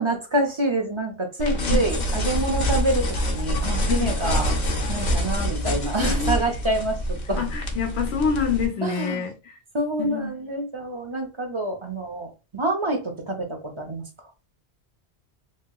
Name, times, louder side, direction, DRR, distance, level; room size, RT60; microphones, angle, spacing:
voice 1, 0.0-4.5 4.9-7.5 8.8-9.3 9.7-14.1, right 1 dB, 35° right, 0.6 m, -27 dB
sound 1, 1.4-8.7, equal, 50° left, 0.7 m, -25 dB
voice 2, 6.0-6.4 7.4-9.3 10.0-10.3, left 6 dB, 80° left, 1.0 m, -26 dB
3.1 x 2.8 x 2.3 m
omnidirectional pair, 1.1 m